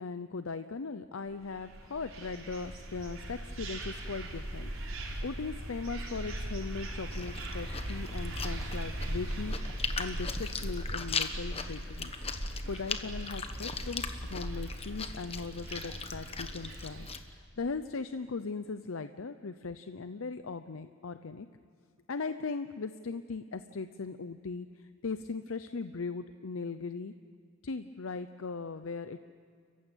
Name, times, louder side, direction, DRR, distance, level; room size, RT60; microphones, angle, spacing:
voice 1, 0.0-4.7 5.2-9.5 10.0-12.1 12.7-17.1 17.3-21.5 22.1-27.1 27.6-29.2, left 4 dB, 80° left, 10 dB, 0.7 m, -39 dB
sound 1, 1.4-17.1, right 1 dB, 85° right, 4.5 m, -39 dB
Chewing mastication, 7.1-17.2, left 5 dB, 30° left, 1.2 m, -40 dB
29.5 x 15.0 x 9.1 m, 2.3 s
head